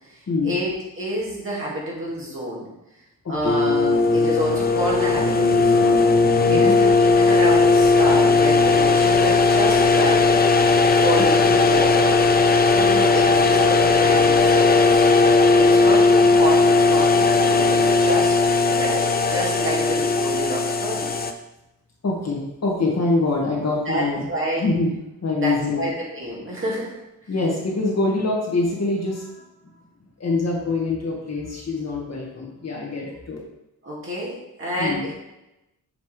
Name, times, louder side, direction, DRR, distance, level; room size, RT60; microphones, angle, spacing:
voice 1, 0.4-2.7 3.3-6.0 6.5-10.3 11.0-12.2 12.7-15.0 15.3-21.1 23.6-24.7 25.4-27.0 33.8-35.1, equal, 35° right, -5 dB, 2.2 m, -28 dB
voice 2, 3.2-3.5 6.4-6.8 22.0-24.3 24.6-25.0 25.2-25.9 27.3-29.4 30.2-33.4 34.8-35.0, left 3 dB, 50° left, -3 dB, 1.8 m, -24 dB
sound 1, 3.4-21.3, left 3 dB, 30° left, 0.4 m, -17 dB
7.1 x 5.2 x 3.3 m, 0.92 s
wide cardioid pair, 145°, 34 cm